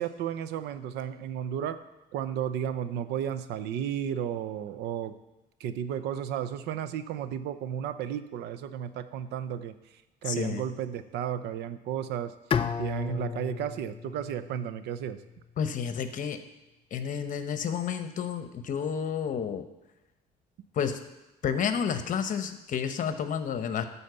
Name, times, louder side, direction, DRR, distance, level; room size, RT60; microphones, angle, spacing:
voice 1, 0.0-1.8 2.1-5.1 5.6-12.3 12.8-15.2, right 9 dB, 80° right, 12 dB, 0.6 m, -33 dB
voice 2, 10.3-10.6 15.6-16.4 16.9-19.7 20.7-21.0 21.4-23.9, left 7 dB, 50° left, 9 dB, 0.9 m, -30 dB
Bowed string instrument, 12.5-15.5, left 7 dB, 35° left, 0.5 m, -34 dB
12.0 x 4.2 x 6.8 m, 0.99 s
cardioid pair, 110°, 17 cm